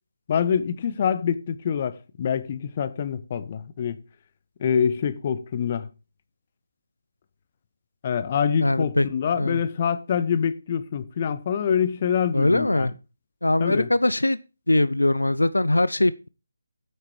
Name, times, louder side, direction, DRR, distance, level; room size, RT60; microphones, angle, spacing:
voice 1, 0.3-4.0 4.6-5.9 8.0-12.9 13.6-13.9, left 7 dB, 30° left, 0.9 m, -25 dB
voice 2, 8.6-9.1 9.4-9.6 12.3-12.9 13.4-14.4 14.7-16.3, left 1 dB, 70° left, 0.5 m, -21 dB
9.2 x 8.9 x 4.6 m
figure-of-eight pair, 150°, 0 cm